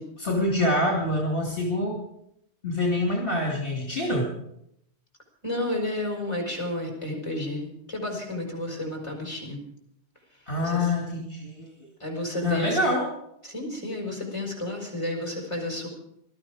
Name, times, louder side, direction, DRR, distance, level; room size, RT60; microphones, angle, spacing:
voice 1, 0.2-2.0 2.6-4.3 10.5-11.9 12.3-13.1, left 1 dB, 55° left, -1 dB, 3.3 m, -26 dB
voice 2, 5.4-9.6 10.6-10.9 12.0-12.8 13.4-15.9, left 1 dB, 25° left, 1 dB, 5.3 m, -31 dB
20.0 x 13.5 x 5.0 m, 0.74 s
omnidirectional pair, 1.1 m